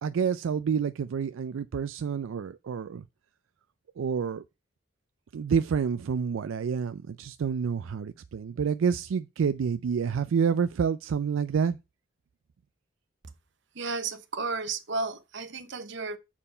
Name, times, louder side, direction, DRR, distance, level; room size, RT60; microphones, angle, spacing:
voice 1, 0.0-3.0 4.0-4.4 5.3-11.8, right 6 dB, 85° right, 0.4 m, -28 dB
voice 2, 13.8-16.2, right 4 dB, 65° right, 0.9 m, -33 dB
7.2 x 4.4 x 5.4 m
head